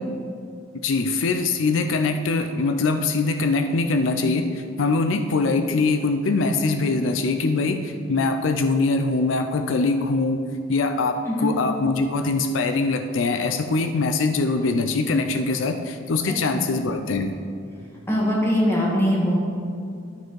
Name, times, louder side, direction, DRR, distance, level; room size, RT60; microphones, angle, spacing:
voice 1, 0.8-17.3, left 3 dB, 80° left, 7 dB, 0.5 m, -23 dB
voice 2, 16.3-16.6 18.1-19.4, equal, 15° left, -4 dB, 1.7 m, -22 dB
12.0 x 4.4 x 4.7 m, 2.3 s
head